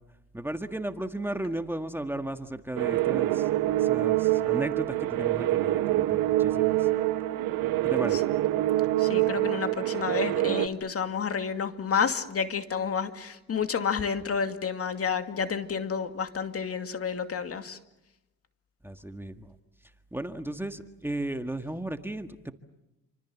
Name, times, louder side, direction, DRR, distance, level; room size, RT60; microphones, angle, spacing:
voice 1, 0.3-3.3 3.9-4.2 4.4-6.8 7.8-8.2 18.8-19.3 20.1-22.5, right 1 dB, 5° right, 7 dB, 1.7 m, -34 dB
sound 1, 2.8-10.7, right 15 dB, 85° right, 1.6 m, -25 dB
voice 2, 9.0-17.8, left 6 dB, 45° left, 8 dB, 2.4 m, -30 dB
28.5 x 26.0 x 7.3 m, 0.91 s
cardioid pair, 85°, 33 cm